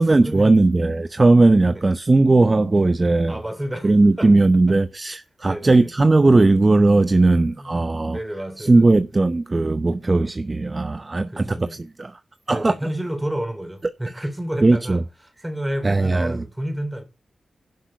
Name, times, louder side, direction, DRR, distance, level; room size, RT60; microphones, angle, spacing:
voice 1, 0.0-3.4 3.8-8.2 8.6-12.2 12.5-12.7 14.6-15.0 15.8-16.4, right 2 dB, 35° right, 0.7 m, -17 dB
voice 2, 3.3-3.9 4.2-4.3 5.4-5.9 7.6-7.7 8.1-9.1 11.3-11.8 12.5-15.0 15.4-17.0, right 1 dB, 10° right, 3.3 m, -30 dB
10.5 x 6.3 x 5.7 m
cardioid pair, 65°, 0 cm